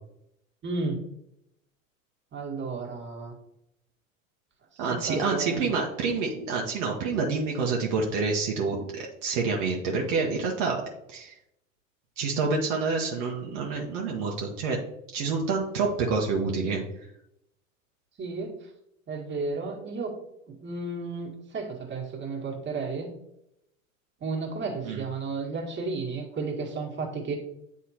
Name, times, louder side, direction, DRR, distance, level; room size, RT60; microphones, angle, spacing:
voice 1, 0.6-1.1 2.3-3.4 4.7-5.7 18.2-18.7 19.1-20.1 20.5-23.1 24.2-27.4, right 4 dB, 25° right, -1 dB, 1.9 m, -33 dB
voice 2, 4.8-10.8 11.1-11.3 12.2-14.8 15.1-16.8 24.8-25.0, right 4 dB, 60° right, -1 dB, 1.2 m, -28 dB
9.2 x 3.6 x 2.9 m, 0.80 s
hypercardioid pair, 80°, 40 cm